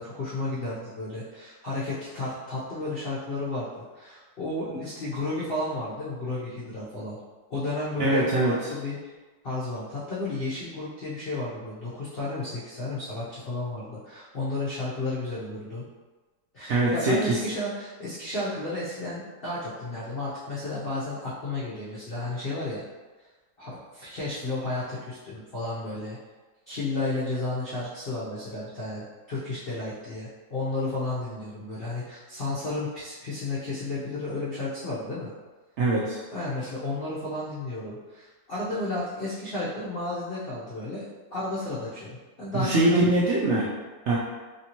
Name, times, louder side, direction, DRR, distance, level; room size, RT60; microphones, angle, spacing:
voice 1, 0.0-7.2 7.5-9.0 9.4-15.8 16.5-22.8 23.6-26.2 26.7-35.3 36.3-41.0 41.3-43.1, left 2 dB, 55° left, -9 dB, 0.6 m, -32 dB
voice 2, 8.0-8.5 16.7-17.3 35.8-36.2 42.6-43.7 44.1-44.2, right 2 dB, 80° right, -6 dB, 0.6 m, -22 dB
3.2 x 2.7 x 2.9 m, 1.3 s
omnidirectional pair, 1.8 m